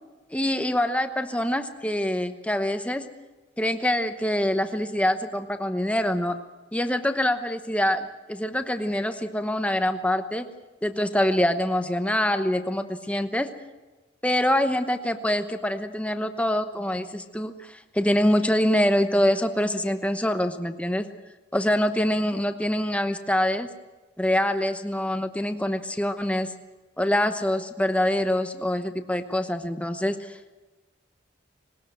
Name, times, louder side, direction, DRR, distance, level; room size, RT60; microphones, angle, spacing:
voice 1, 0.3-3.1 3.6-6.4 6.7-10.5 10.8-13.5 14.2-21.1 21.5-23.7 24.2-26.5 27.0-30.3, left 1 dB, 5° left, 8 dB, 1.0 m, -25 dB
20.0 x 20.0 x 7.8 m, 1.2 s
head